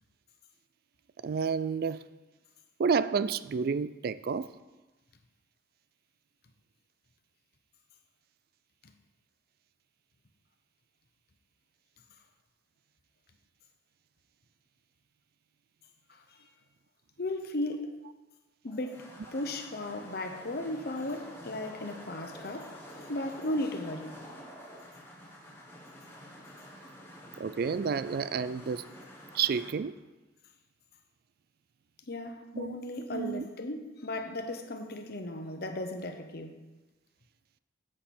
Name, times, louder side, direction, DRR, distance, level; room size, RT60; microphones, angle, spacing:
voice 1, 1.2-2.0 2.8-4.5 27.4-28.9 29.3-30.0 32.5-32.8 33.1-33.5, right 6 dB, 55° right, 0.3 m, -30 dB
voice 2, 17.2-18.0 18.6-24.2 32.1-36.6, left 1 dB, 55° left, 1.0 m, -36 dB
sound 1, 18.7-29.7, equal, 15° left, 1.5 m, -49 dB
10.0 x 7.7 x 4.3 m
head